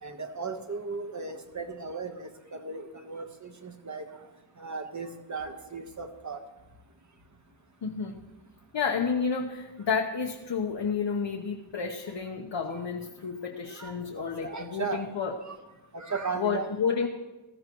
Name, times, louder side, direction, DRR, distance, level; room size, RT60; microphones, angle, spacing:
voice 1, 0.0-4.1 4.6-6.4 12.7-12.8 13.8-14.0 14.4-15.0 15.4-15.6 15.9-16.7, right 4 dB, 35° right, 6 dB, 1.2 m, -36 dB
voice 2, 7.8-8.2 8.7-15.3 16.4-17.1, left 6 dB, 60° left, 1 dB, 1.1 m, -30 dB
19.5 x 14.0 x 3.1 m, 1.1 s
wide cardioid pair, 135°, 47 cm